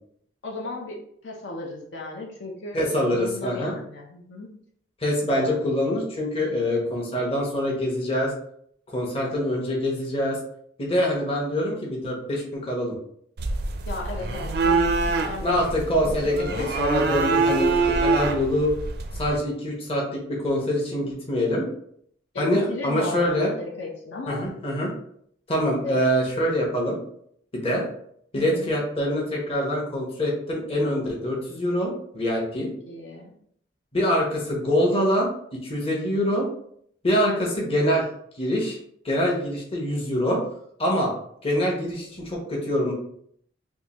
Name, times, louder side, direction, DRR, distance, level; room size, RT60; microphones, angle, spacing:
voice 1, 0.4-1.0 1.2-4.5 5.2-5.6 13.9-14.8 15.1-15.6 15.9-16.7 22.3-24.4 25.8-26.0 28.3-28.7 32.9-33.4, left 3 dB, 70° left, -1 dB, 0.7 m, -35 dB
voice 2, 2.7-3.7 5.0-8.3 8.9-10.4 10.8-13.0 15.4-18.7 19.1-21.6 22.4-23.5 24.3-24.9 25.5-27.0 27.5-27.8 28.3-32.7 33.9-36.5 37.0-38.0 38.4-38.8 39.0-40.4 40.8-41.1 41.4-42.9, equal, 30° left, -2 dB, 0.9 m, -25 dB
sound 1, 13.4-19.4, right 3 dB, 55° right, 0.4 m, -25 dB
3.7 x 2.6 x 2.9 m, 0.66 s
head